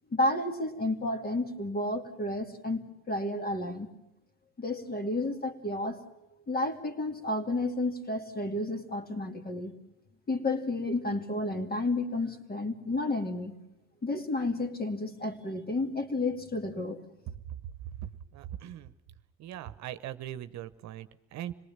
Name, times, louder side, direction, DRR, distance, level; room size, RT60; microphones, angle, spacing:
voice 1, 0.1-3.9 4.6-6.0 6.5-9.7 10.3-13.6 14.0-17.0, left 2 dB, 30° left, 7 dB, 2.7 m, -31 dB
voice 2, 17.9-18.9 19.4-21.5, right 11 dB, 60° right, 13 dB, 1.1 m, -40 dB
26.5 x 19.0 x 7.4 m, 0.89 s
supercardioid pair, 85°, 31 cm